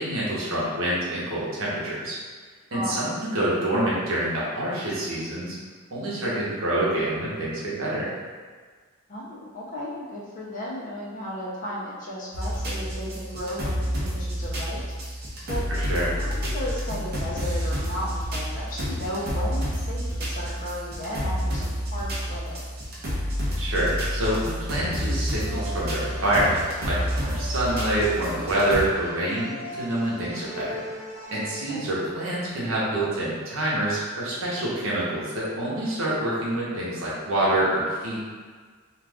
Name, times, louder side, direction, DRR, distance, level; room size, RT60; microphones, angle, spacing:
voice 1, 0.0-2.2 2.7-5.6 5.9-8.1 15.7-16.1 23.6-30.8 31.3-38.2, right 1 dB, 70° right, -7 dB, 0.9 m, -26 dB
voice 2, 2.7-3.1 9.1-15.2 15.5-15.6 16.1-22.7 30.2-30.5 31.7-31.9, equal, 40° left, -5 dB, 0.6 m, -35 dB
sound 1, 12.3-28.8, equal, 45° right, 0.6 m, -29 dB
sound 2, 25.4-32.4, equal, 15° left, 0.9 m, -40 dB
2.5 x 2.4 x 3.4 m, 1.5 s
head